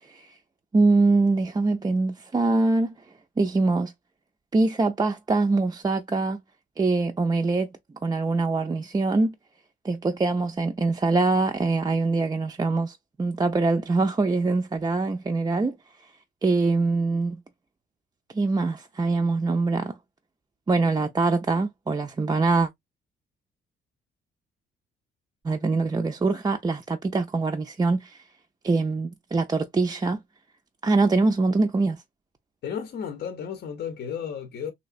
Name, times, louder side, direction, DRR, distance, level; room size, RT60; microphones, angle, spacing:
voice 1, 0.7-2.9 3.4-3.9 4.5-6.4 6.8-7.7 8.0-9.3 9.8-15.8 16.4-17.4 18.3-20.0 20.7-22.7 25.4-28.2 28.6-30.2 30.8-32.0, right 3 dB, 20° right, 0.4 m, -23 dB
voice 2, 32.6-34.7, left 7 dB, 60° left, 0.7 m, -33 dB
3.1 x 2.8 x 2.4 m
cardioid pair, 90°, 20 cm